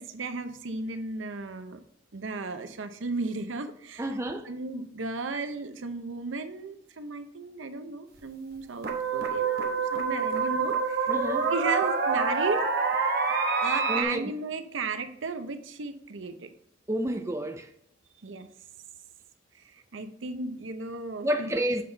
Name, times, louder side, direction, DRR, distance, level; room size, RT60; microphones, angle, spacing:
voice 1, 0.0-1.8 2.1-4.0 4.5-11.1 11.5-12.6 13.6-16.5 18.2-18.5 19.9-21.5, right 3 dB, 75° right, 0.7 m, -34 dB
voice 2, 4.0-4.5 11.1-11.5 13.9-14.3 16.9-17.7 21.2-21.8, right 1 dB, 15° right, 0.5 m, -30 dB
sound 1, 8.2-8.3 8.8-14.0, right 4 dB, 50° right, 1.1 m, -26 dB
7.6 x 5.5 x 3.3 m
head